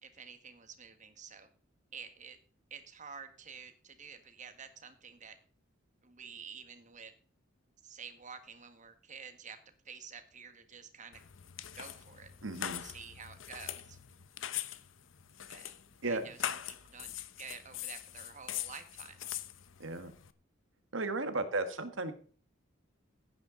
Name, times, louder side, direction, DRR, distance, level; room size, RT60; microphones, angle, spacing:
voice 1, 0.0-1.5 1.9-2.4 2.7-5.4 6.0-7.1 7.8-9.6 9.8-11.2 11.7-12.3 12.7-14.0 15.5-15.7 16.0-19.4, right 6 dB, 40° right, 8 dB, 1.7 m, -50 dB
sound 1, 11.1-20.3, left 11 dB, 80° left, 0.8 m, -42 dB
voice 2, 12.4-12.8 16.0-16.3 19.8-20.1 20.9-22.1, right 2 dB, 85° right, 9 dB, 1.7 m, -34 dB
16.0 x 9.1 x 4.0 m, 0.42 s
head